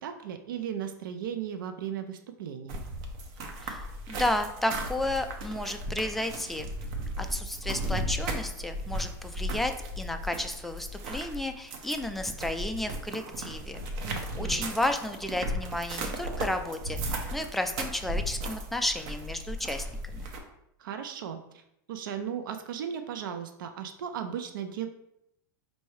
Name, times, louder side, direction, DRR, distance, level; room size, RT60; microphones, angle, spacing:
voice 1, 0.0-2.9 14.0-14.7 20.8-21.6 21.9-24.9, right 8 dB, 85° right, 8 dB, 0.4 m, -36 dB
sound 1, 2.7-20.4, right 1 dB, 55° right, 0.7 m, -36 dB
voice 2, 4.1-6.7 7.2-13.8 14.1-20.3, left 1 dB, ahead, 6 dB, 0.3 m, -32 dB
4.5 x 2.6 x 3.2 m, 0.80 s
hypercardioid pair, 120°, 11 cm